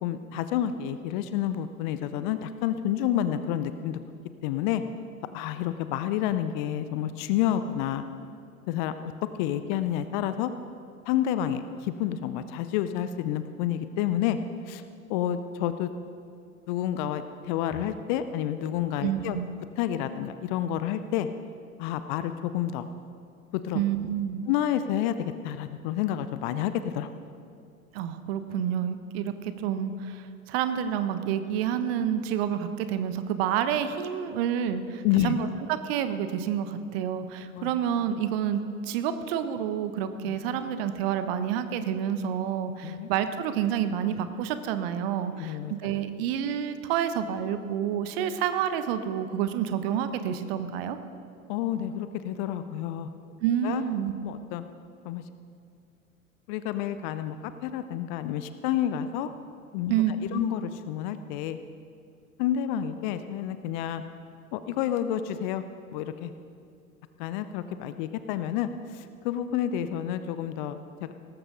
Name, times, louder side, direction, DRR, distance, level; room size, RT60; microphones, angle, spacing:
voice 1, 0.0-4.0 4.4-4.8 5.3-8.0 8.7-9.1 9.4-10.5 11.1-14.4 14.7-14.8 15.1-15.9 16.7-19.4 19.8-21.3 21.8-22.9 23.5-23.8 24.5-27.1 35.0-35.4 37.5-37.7 40.3-40.4 42.8-43.1 45.4-45.9 51.5-53.1 53.6-53.8 54.2-54.6 55.0-55.2 56.5-59.3 59.7-59.9 60.3-61.6 62.4-64.0 64.5-65.6 65.9-66.3 67.2-71.1, left 11 dB, 35° left, 11 dB, 0.6 m, -29 dB
voice 2, 19.0-19.5 23.7-24.5 27.9-35.5 35.8-51.0 53.4-54.1 59.9-60.4, right 9 dB, 45° right, 10 dB, 1.0 m, -29 dB
18.0 x 14.0 x 3.8 m, 2.5 s
figure-of-eight pair, 90°, 42 cm